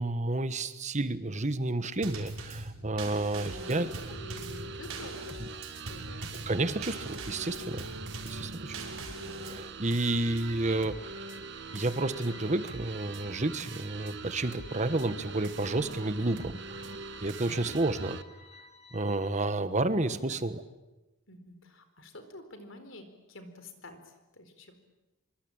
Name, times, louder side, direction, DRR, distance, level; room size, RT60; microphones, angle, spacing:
voice 1, 0.0-3.9 6.5-7.9 8.2-8.8 9.4-11.3 11.7-16.8 17.2-18.2 18.9-20.6, right 2 dB, 35° right, 12 dB, 1.3 m, -30 dB
Drum kit / Snare drum / Bass drum, 2.0-9.7, right 2 dB, 80° right, 6.0 m, -42 dB
sound 1, 3.4-18.2, right 4 dB, 55° right, 1.1 m, -43 dB
voice 2, 3.5-6.7 20.3-20.4 21.3-24.8, left 1 dB, 65° left, 9 dB, 4.3 m, -49 dB
sound 2, 9.8-19.4, left 2 dB, 30° left, 3.0 m, -54 dB
26.0 x 24.5 x 8.7 m, 1.0 s
head